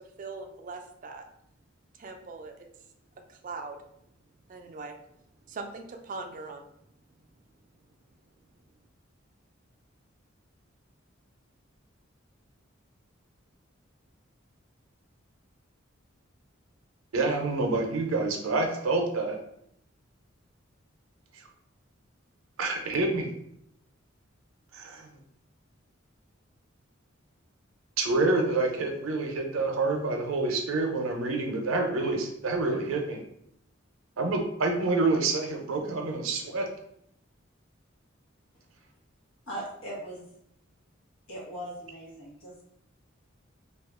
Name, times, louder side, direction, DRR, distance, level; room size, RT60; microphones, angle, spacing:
voice 1, 0.2-1.2 2.0-2.7 3.3-3.8 4.5-5.0 5.5-6.7, right 3 dB, 40° right, 5 dB, 0.4 m, -40 dB
voice 2, 17.1-19.4 22.6-23.3 24.7-25.1 28.0-33.2 34.2-36.7, right 3 dB, 90° right, 3 dB, 0.5 m, -27 dB
voice 3, 39.5-40.3 41.3-42.6, right 1 dB, 80° left, -4 dB, 1.2 m, -39 dB
2.7 x 2.3 x 3.5 m, 0.74 s
head